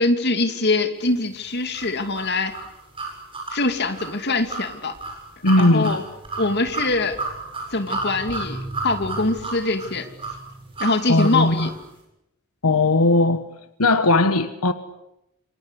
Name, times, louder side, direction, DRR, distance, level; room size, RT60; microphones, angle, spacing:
voice 1, 0.0-2.5 3.5-4.9 5.6-6.0 6.4-7.2 7.7-10.1 10.8-11.7, left 2 dB, 50° left, 7 dB, 2.6 m, -23 dB
sound 1, 1.7-11.8, right 3 dB, 25° right, 7.9 m, -32 dB
voice 2, 5.4-6.0 11.1-11.7 12.6-13.4 13.8-14.7, left 2 dB, 90° left, 10 dB, 1.4 m, -18 dB
27.5 x 24.0 x 8.4 m, 0.87 s
head